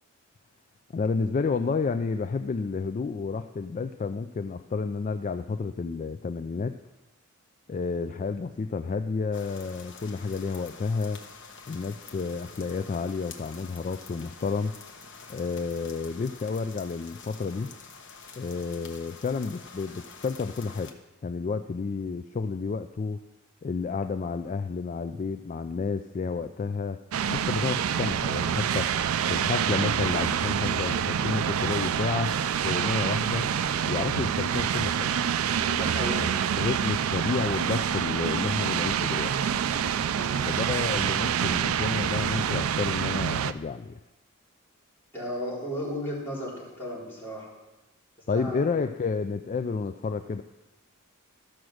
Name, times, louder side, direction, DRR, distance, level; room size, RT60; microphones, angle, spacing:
voice 1, 0.9-6.8 7.7-11.2 11.7-14.7 15.3-17.7 18.4-20.9 21.2-23.2 23.6-27.0 27.2-28.9 29.3-32.4 32.6-33.5 33.8-35.2 36.2-36.3 36.6-39.3 40.5-44.0 48.3-50.4, left 4 dB, 35° left, 8 dB, 0.3 m, -30 dB
sound 1, 9.3-20.9, left 5 dB, 60° left, 1.0 m, -47 dB
sound 2, 27.1-43.5, right 8 dB, 75° right, 0.4 m, -27 dB
voice 2, 35.5-36.3 40.1-40.4 45.1-47.5 48.3-48.7, equal, 10° left, -7 dB, 3.7 m, -34 dB
13.5 x 6.1 x 6.3 m, 1.1 s
head